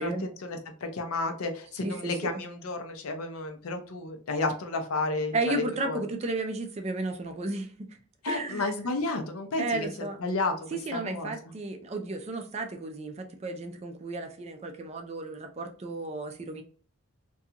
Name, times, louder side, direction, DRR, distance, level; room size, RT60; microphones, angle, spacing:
voice 1, 0.0-6.0 8.2-9.6 10.2-11.5, left 3 dB, 80° left, 0.5 m, -32 dB
voice 2, 5.3-8.0 8.3-8.7 9.6-10.2 10.7-16.6, right 2 dB, 30° right, 0.3 m, -33 dB
2.5 x 2.3 x 2.7 m
head